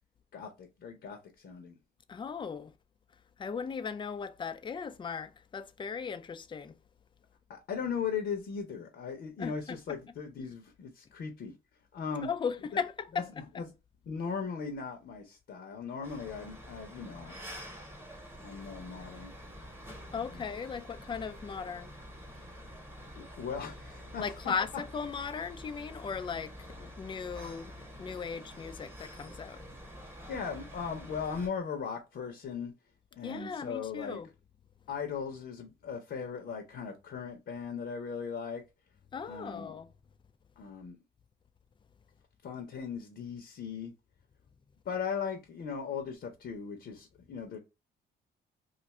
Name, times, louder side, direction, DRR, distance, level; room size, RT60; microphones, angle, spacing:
voice 1, 0.3-1.8 7.5-11.6 11.9-12.3 13.1-13.2 13.6-13.7 14.1-17.4 18.4-19.3 20.2-20.5 22.3-22.5 23.1-24.5 26.3-26.4 30.3-32.7 33.1-34.2 34.9-38.6 39.2-39.8 40.6-41.0 42.4-43.9 44.8-47.6, left 6 dB, 60° left, 0.8 m, -38 dB
voice 2, 2.1-2.7 3.4-6.7 9.4-10.0 12.2-13.6 20.1-21.9 24.2-29.6 33.2-34.3 39.1-39.9, left 6 dB, 25° left, 0.4 m, -37 dB
sound 1, 16.0-31.5, equal, 10° right, 1.0 m, -48 dB
2.5 x 2.4 x 4.1 m
cardioid pair, 90°, 20 cm